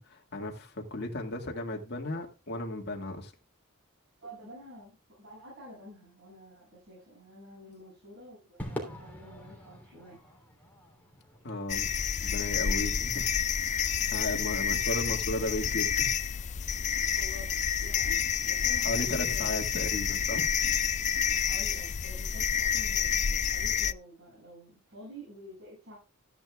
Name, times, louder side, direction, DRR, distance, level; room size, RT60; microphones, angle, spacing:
voice 1, 0.0-3.3 11.4-11.9 12.2-13.2 13.6-16.1 18.8-20.5, left 1 dB, 50° left, 1.9 m, -35 dB
voice 2, 4.2-10.2 17.1-17.5 17.8-19.7 21.3-26.0, equal, 55° right, 7.7 m, -49 dB
Crowd / Fireworks, 8.6-13.1, equal, 10° left, 3.2 m, -44 dB
sound 1, 11.7-23.9, left 8 dB, 35° left, 0.4 m, -29 dB
14.0 x 10.5 x 2.4 m
head